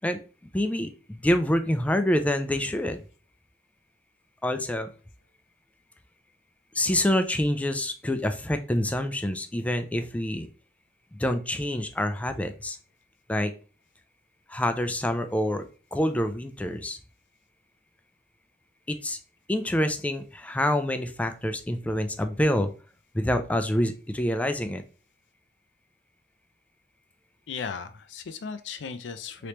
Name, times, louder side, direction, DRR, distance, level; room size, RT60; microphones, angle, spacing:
voice 1, 0.5-3.0 4.4-4.9 6.7-10.5 11.1-12.8 13.3-13.5 14.5-15.6 15.9-17.0 18.9-19.2 19.5-22.7 23.1-24.8, left 1 dB, 10° left, 8 dB, 0.3 m, -26 dB
voice 2, 27.5-29.5, left 5 dB, 75° left, 11 dB, 0.4 m, -36 dB
3.3 x 3.0 x 2.9 m, 0.36 s
head